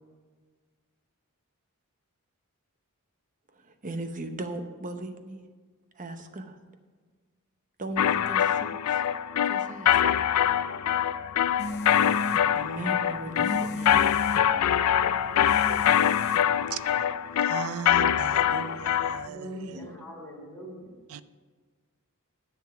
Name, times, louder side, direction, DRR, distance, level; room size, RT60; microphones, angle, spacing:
voice 1, 3.5-5.4 6.0-6.5 7.8-9.0 9.4-10.0 12.5-14.0, right 1 dB, 35° right, 0.9 m, -37 dB
sound 1, 8.0-19.3, left 10 dB, 85° left, 0.4 m, -24 dB
sound 2, 11.6-17.0, left 2 dB, 50° left, 0.7 m, -36 dB
voice 2, 17.4-19.5 21.1-21.2, right 8 dB, 65° right, 0.4 m, -37 dB
voice 3, 19.2-20.9, equal, 5° left, 3.2 m, -41 dB
10.5 x 7.1 x 5.9 m
head